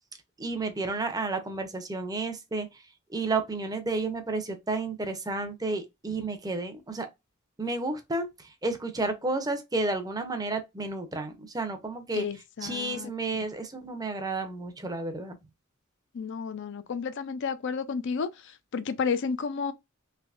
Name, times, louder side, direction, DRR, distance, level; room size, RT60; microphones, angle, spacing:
voice 1, 0.4-2.8 3.1-7.1 7.6-12.3 12.6-15.4, right 3 dB, 20° right, 0.6 m, -31 dB
voice 2, 12.1-13.1 16.1-19.7, left 5 dB, 60° left, 0.4 m, -32 dB
3.3 x 3.0 x 2.4 m
head